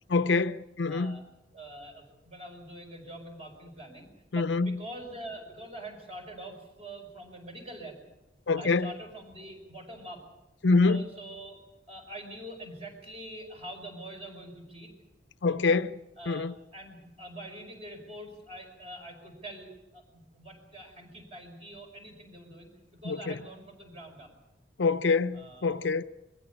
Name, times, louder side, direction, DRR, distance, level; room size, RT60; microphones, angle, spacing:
voice 1, 0.1-1.2 4.3-4.8 8.5-8.9 10.6-11.0 15.4-15.9 16.3-16.5 23.0-23.3 24.8-26.0, left 4 dB, 75° left, 0.6 m, -25 dB
voice 2, 0.9-1.2 1.5-8.0 8.6-10.3 10.9-11.6 11.9-14.9 15.5-15.8 16.2-24.3 25.3-25.8, right 1 dB, 35° right, 5.2 m, -45 dB
22.0 x 15.5 x 8.2 m
head